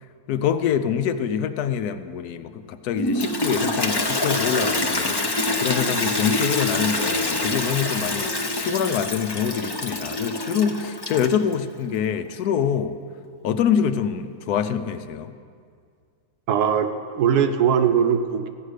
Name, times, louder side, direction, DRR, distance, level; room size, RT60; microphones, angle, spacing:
voice 1, 0.3-13.0 13.4-15.3, left 8 dB, 85° left, 10 dB, 1.2 m, -25 dB
Toilet flush, 3.0-11.5, left 2 dB, 25° left, 0.5 m, -25 dB
voice 2, 16.5-18.5, right 7 dB, 85° right, 7 dB, 1.4 m, -20 dB
14.5 x 9.5 x 6.5 m, 2.2 s
omnidirectional pair, 1.6 m